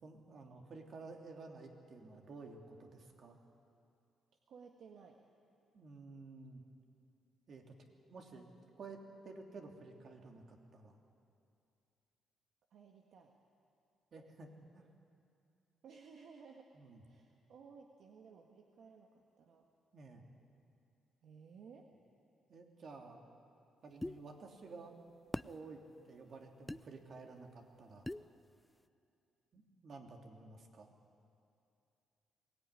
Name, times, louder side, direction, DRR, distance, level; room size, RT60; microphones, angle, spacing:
voice 1, 0.0-3.4 5.7-6.6 7.5-7.7 8.1-8.5 8.8-9.0 9.2-11.0 14.1-14.9 16.7-17.0 19.9-20.2 22.5-23.2 23.8-24.9 25.4-25.8 26.1-28.1 29.5-30.9, right 3 dB, 50° right, 2 dB, 3.1 m, -52 dB
voice 2, 4.5-5.2 12.7-13.3 15.8-16.8 17.0-19.7 21.2-21.9, right 5 dB, 70° right, 2 dB, 1.7 m, -57 dB
sound 1, 24.0-24.2 25.3-25.5 26.7-26.8 28.1-28.3, left 1 dB, 10° left, 0.5 m, -40 dB
22.0 x 18.0 x 9.9 m, 2.6 s
cardioid pair, 90°, 0 cm